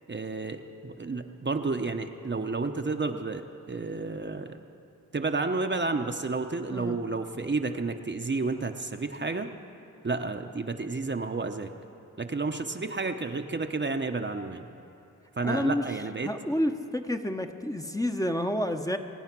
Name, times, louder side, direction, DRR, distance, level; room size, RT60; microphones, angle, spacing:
voice 1, 0.1-4.6 5.1-9.5 10.0-11.7 12.2-14.7 15.4-16.3, right 3 dB, 35° right, 5 dB, 0.9 m, -31 dB
voice 2, 15.4-15.8 16.2-19.0, equal, 10° left, 5 dB, 1.0 m, -29 dB
24.5 x 9.0 x 6.1 m, 2.8 s
cardioid pair, 45°, 31 cm